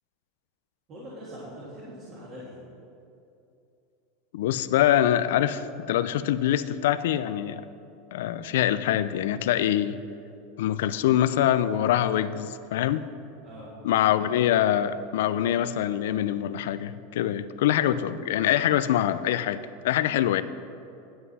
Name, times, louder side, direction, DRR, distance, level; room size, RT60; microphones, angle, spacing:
voice 1, 0.9-2.6 13.4-13.7, equal, 30° right, -7 dB, 1.5 m, -42 dB
voice 2, 4.3-7.6 8.1-10.0 10.6-13.0 13.8-19.6 19.8-20.4, left 11 dB, 75° left, 14 dB, 0.4 m, -24 dB
9.5 x 7.8 x 4.1 m, 2.7 s
supercardioid pair, 170°, 0 cm